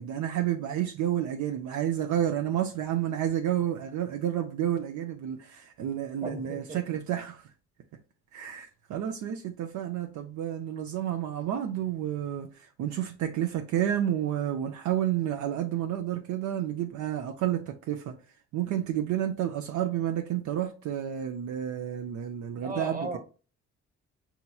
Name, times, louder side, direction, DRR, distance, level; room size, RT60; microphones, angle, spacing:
voice 1, 0.0-7.4 8.3-18.1 18.5-23.1, right 11 dB, 70° right, 0.6 m, -30 dB
voice 2, 6.2-6.8 22.6-23.2, right 2 dB, 30° right, 1.3 m, -36 dB
5.6 x 2.8 x 2.3 m
cardioid pair, 90°, 30 cm